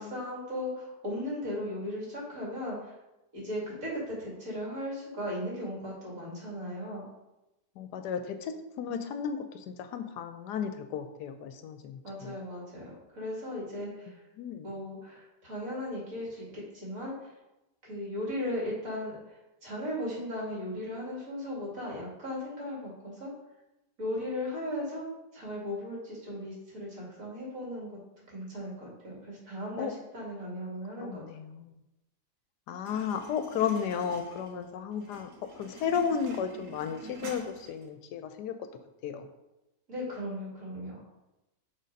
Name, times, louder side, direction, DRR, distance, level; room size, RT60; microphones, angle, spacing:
voice 1, 0.0-2.9 3.3-7.1 12.0-14.2 14.6-17.3 17.8-23.3 24.0-25.0 25.3-28.0 28.3-31.2 39.9-41.0, left 1 dB, 50° right, -4 dB, 2.6 m, -37 dB
voice 2, 7.8-12.3 14.1-14.7 29.8-29.9 31.0-31.7 32.7-35.3 35.6-38.5 39.0-39.3, left 7 dB, 75° left, 8 dB, 1.1 m, -34 dB
sound 1, 32.8-37.9, right 3 dB, 80° right, 1.8 m, -48 dB
6.5 x 3.9 x 5.2 m, 0.96 s
omnidirectional pair, 1.8 m